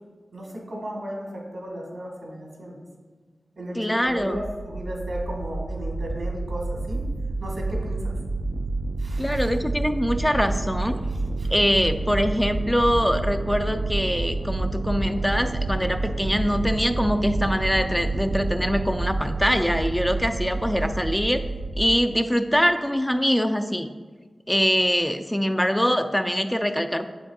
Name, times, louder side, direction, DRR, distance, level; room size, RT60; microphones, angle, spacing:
voice 1, 0.3-2.8 3.5-7.0 7.4-8.1 9.0-9.5 11.1-11.5, equal, 75° right, -1 dB, 1.6 m, -35 dB
voice 2, 3.8-4.4 9.2-11.0 11.5-21.4 21.8-23.9 24.5-27.1, equal, 5° left, 7 dB, 0.3 m, -23 dB
sound 1, 4.1-22.0, right 2 dB, 60° right, 0.4 m, -29 dB
7.3 x 6.1 x 2.3 m, 1.4 s
cardioid pair, 50°, 0 cm